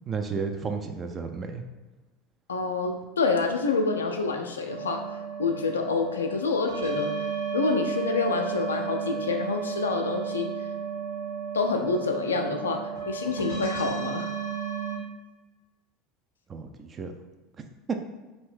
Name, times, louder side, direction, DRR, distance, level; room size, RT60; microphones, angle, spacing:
voice 1, 0.1-1.6 16.5-17.1 17.9-18.0, right 5 dB, 25° right, 5 dB, 0.4 m, -32 dB
voice 2, 2.5-5.0 5.4-7.2 7.5-10.5 11.5-14.3, left 4 dB, 75° left, 4 dB, 0.3 m, -27 dB
sound 1, 4.7-15.0, right 6 dB, 80° right, 1.1 m, -33 dB
2.7 x 2.6 x 3.4 m, 1.2 s
figure-of-eight pair, 75°, 0 cm